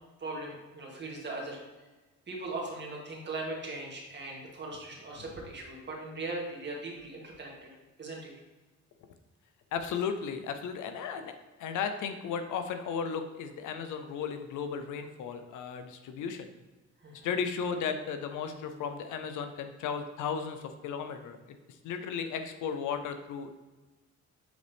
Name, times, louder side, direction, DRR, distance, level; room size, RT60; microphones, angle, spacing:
voice 1, 0.2-1.6 2.3-7.7 8.0-8.3 17.0-17.3, right 2 dB, 35° right, -2 dB, 2.1 m, -39 dB
voice 2, 9.7-16.5 17.2-21.6 21.8-23.6, left 6 dB, 85° left, 8 dB, 0.7 m, -35 dB
7.9 x 4.0 x 3.5 m, 1.2 s
cardioid pair, 90°, 30 cm